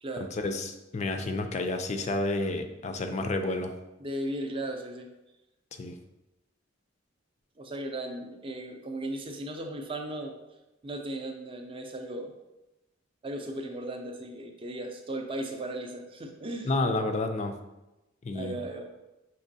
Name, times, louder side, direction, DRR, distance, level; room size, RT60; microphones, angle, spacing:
voice 1, 0.3-3.7 5.8-5.9 16.6-17.6 18.2-18.6, left 2 dB, 35° left, 6 dB, 0.4 m, -30 dB
voice 2, 4.0-5.1 7.6-10.3 10.8-12.3 13.2-16.7 18.3-18.9, right 1 dB, 25° right, 4 dB, 0.5 m, -36 dB
6.1 x 2.9 x 2.7 m, 0.98 s
head